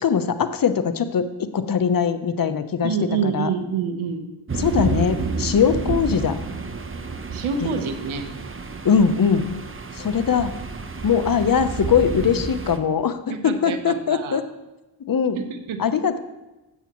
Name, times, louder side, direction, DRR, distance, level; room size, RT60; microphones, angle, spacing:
voice 1, 0.0-3.0 3.2-3.5 4.6-6.4 7.6-7.7 8.8-9.5 10.0-10.5 11.0-13.2 13.4-14.4 15.1-15.4 15.8-16.2, left 7 dB, 45° left, 11 dB, 0.8 m, -21 dB
voice 2, 2.8-4.2 7.3-8.3 13.3-14.4 15.4-15.8, right 6 dB, 85° right, 8 dB, 1.1 m, -27 dB
sound 1, 4.5-12.8, right 4 dB, 25° right, 0.9 m, -30 dB
13.0 x 8.3 x 3.0 m, 1.1 s
cardioid pair, 70°, 47 cm